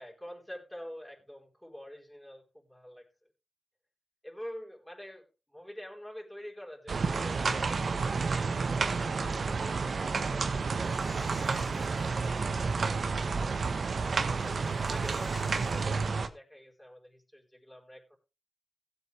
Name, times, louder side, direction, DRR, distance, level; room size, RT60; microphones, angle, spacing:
voice 1, 0.0-3.1 4.2-9.5 9.8-10.1 10.6-13.1 13.4-13.7 14.2-18.2, equal, 5° left, -1 dB, 4.6 m, -47 dB
sound 1, 6.9-16.3, right 4 dB, 70° right, 1.3 m, -30 dB
sound 2, 10.8-15.9, left 2 dB, 30° left, 2.2 m, -51 dB
16.5 x 8.2 x 3.4 m, 0.29 s
cardioid pair, 55°, 0 cm